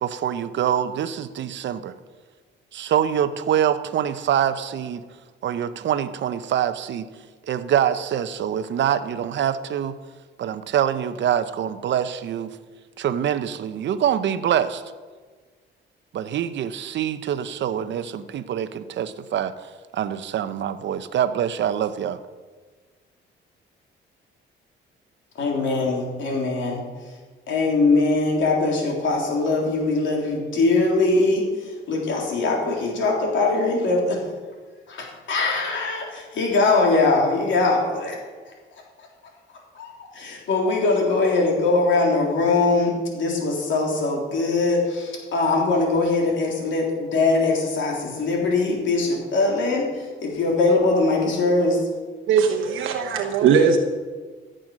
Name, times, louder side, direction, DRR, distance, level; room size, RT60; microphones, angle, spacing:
voice 1, 0.0-1.9 2.7-5.0 5.4-7.0 7.5-10.0 10.4-12.5 13.0-14.8 16.1-19.5 19.9-22.2, right 9 dB, 65° right, 12 dB, 0.8 m, -25 dB
voice 2, 25.4-26.8 27.5-34.2 34.9-38.2 38.5-38.6 39.8-51.8, left 3 dB, 70° left, -1 dB, 3.5 m, -22 dB
voice 3, 52.3-53.8, right 6 dB, 85° right, 2 dB, 1.1 m, -19 dB
15.0 x 7.8 x 6.4 m, 1.4 s
cardioid pair, 90°, 20 cm